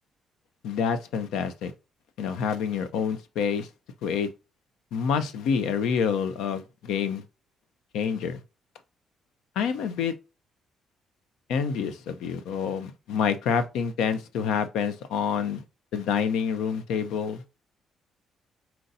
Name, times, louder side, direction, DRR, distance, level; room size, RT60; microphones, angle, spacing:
voice 1, 0.6-1.7 2.2-3.7 4.0-4.3 4.9-7.2 7.9-8.4 9.6-10.1 11.5-15.6 15.9-17.4, left 7 dB, 90° left, 0.6 m, -27 dB
4.4 x 2.6 x 4.0 m
cardioid pair, 90°, 0 cm